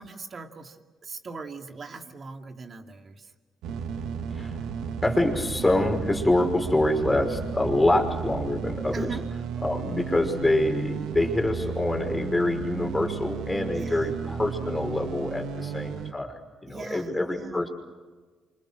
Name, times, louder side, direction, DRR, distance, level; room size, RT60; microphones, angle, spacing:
voice 1, 0.0-3.3 8.9-9.3 13.7-14.1 16.7-17.7, right 4 dB, 40° right, 4 dB, 2.6 m, -40 dB
sound 1, 3.6-16.1, right 6 dB, 90° right, 1.6 m, -34 dB
voice 2, 5.0-9.1 9.6-17.7, left 1 dB, 15° left, 3 dB, 5.6 m, -25 dB
28.5 x 26.0 x 6.5 m, 1.4 s
cardioid pair, 90°, 0 cm